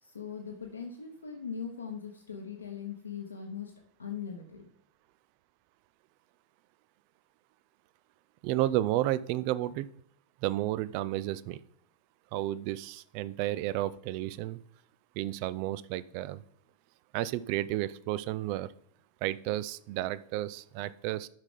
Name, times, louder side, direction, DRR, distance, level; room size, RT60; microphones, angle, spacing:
voice 1, 0.0-3.7 4.0-4.7, left 7 dB, 75° left, 1 dB, 1.1 m, -40 dB
voice 2, 8.4-9.9 10.4-11.6 12.3-14.6 15.2-16.4 17.1-18.7 19.2-21.3, right 15 dB, 45° right, 17 dB, 0.4 m, -32 dB
10.5 x 5.9 x 3.8 m, 0.67 s
figure-of-eight pair, 90°, 0 cm